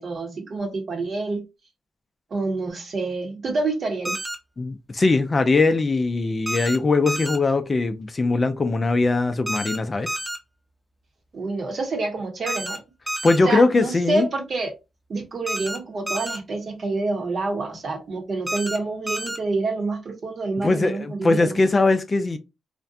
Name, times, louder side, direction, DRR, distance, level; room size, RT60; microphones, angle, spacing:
voice 1, 0.0-1.4 2.3-4.2 11.3-12.8 13.4-14.7 15.1-21.6, right 3 dB, 55° right, 0.8 m, -27 dB
sound 1, 4.1-4.4 6.5-6.8 7.1-7.4 9.5-9.8 10.1-10.4 12.5-12.8 13.1-13.4 15.5-15.8 16.1-16.4 18.5-18.8 19.1-19.4, right 1 dB, 15° right, 0.7 m, -29 dB
voice 2, 4.6-10.1 13.2-14.3 20.6-22.4, left 3 dB, 40° left, 0.4 m, -21 dB
2.5 x 2.1 x 2.5 m
supercardioid pair, 55°, 0 cm